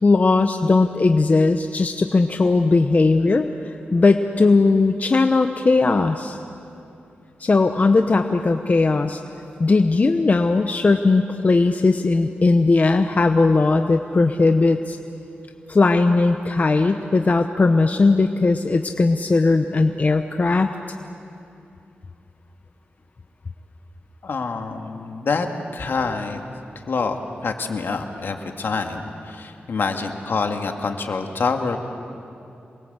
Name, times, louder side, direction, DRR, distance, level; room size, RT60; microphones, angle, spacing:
voice 1, 0.0-3.5 3.9-6.4 7.4-9.2 9.6-15.0 15.7-20.7, left 3 dB, 40° left, 6 dB, 0.9 m, -18 dB
voice 2, 24.2-25.5 25.7-26.4 26.9-27.2 27.4-31.8, left 4 dB, 70° left, 4 dB, 2.1 m, -26 dB
27.5 x 22.0 x 8.1 m, 2.7 s
cardioid pair, 75°, 4 cm